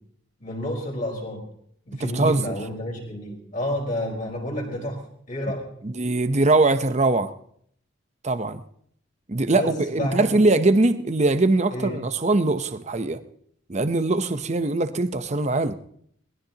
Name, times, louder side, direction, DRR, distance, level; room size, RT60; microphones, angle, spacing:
voice 1, 0.4-1.4 1.9-5.0 5.3-5.7 9.4-10.5 11.7-12.0, equal, 40° left, -2 dB, 4.6 m, -30 dB
voice 2, 2.0-2.6 5.8-7.3 8.2-8.6 9.3-13.2 13.7-15.7, right 2 dB, 35° right, 10 dB, 0.7 m, -22 dB
22.0 x 19.5 x 2.9 m, 0.66 s
head